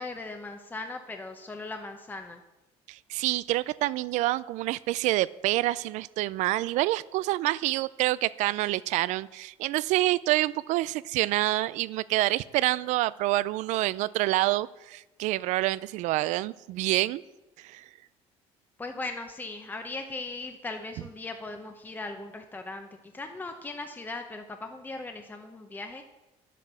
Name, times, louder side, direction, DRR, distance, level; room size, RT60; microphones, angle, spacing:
voice 1, 0.0-2.4 18.8-22.9 23.1-26.0, left 3 dB, 15° left, 5 dB, 0.9 m, -38 dB
voice 2, 2.9-17.2 17.6-17.8, right 17 dB, 75° right, 19 dB, 0.4 m, -27 dB
9.5 x 8.3 x 6.9 m, 1.0 s
cardioid pair, 110°, 12 cm